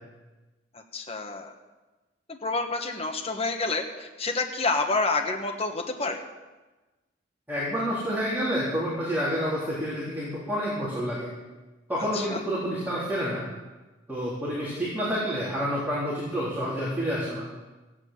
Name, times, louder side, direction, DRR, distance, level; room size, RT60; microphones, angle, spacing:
voice 1, 0.9-1.5 2.3-6.2 12.0-12.4, left 3 dB, 35° left, 2 dB, 1.3 m, -28 dB
voice 2, 7.5-11.3 11.9-13.4 14.1-17.5, equal, 10° right, -9 dB, 3.6 m, -29 dB
16.0 x 8.9 x 7.5 m, 1.2 s
head